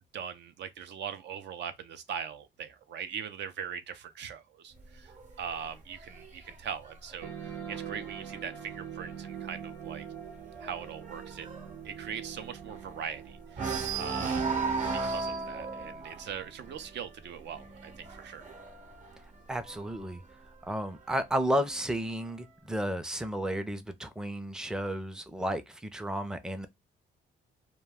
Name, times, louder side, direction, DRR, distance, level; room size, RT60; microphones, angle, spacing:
voice 1, 0.1-5.1 5.4-10.1 10.6-11.5 11.8-14.5 14.9-18.4, right 7 dB, 65° right, 0.5 m, -41 dB
sound 1, 4.8-8.4 8.8-9.1 9.4-9.5 9.9-13.1 13.5-20.0 20.9-21.9, right 4 dB, 35° right, 0.8 m, -36 dB
sound 2, 7.2-18.2, right 8 dB, 90° right, 0.9 m, -45 dB
voice 2, 19.5-20.2 20.6-26.7, equal, 5° right, 0.4 m, -32 dB
2.3 x 2.2 x 3.4 m
cardioid pair, 90°, 20 cm